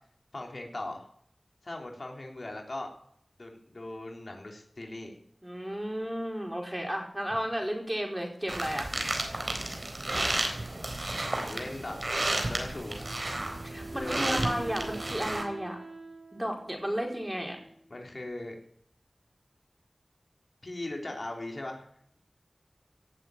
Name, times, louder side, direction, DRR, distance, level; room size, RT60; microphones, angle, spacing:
voice 1, 0.3-1.1 1.6-2.9 3.4-5.2 11.4-12.0 12.5-13.0 13.9-14.8 17.9-18.6 20.6-21.9, left 2 dB, 60° left, 1 dB, 3.5 m, -39 dB
voice 2, 5.4-8.9 13.6-15.8 16.3-17.6, equal, 15° right, 0 dB, 5.0 m, -33 dB
sound 1, 8.5-15.4, right 2 dB, 55° right, 4.0 m, -32 dB
Wind instrument woodwind instrument, 13.0-18.0, right 3 dB, 80° right, 7.0 m, -45 dB
17.5 x 7.8 x 9.1 m, 0.65 s
wide cardioid pair, 50°, 0 cm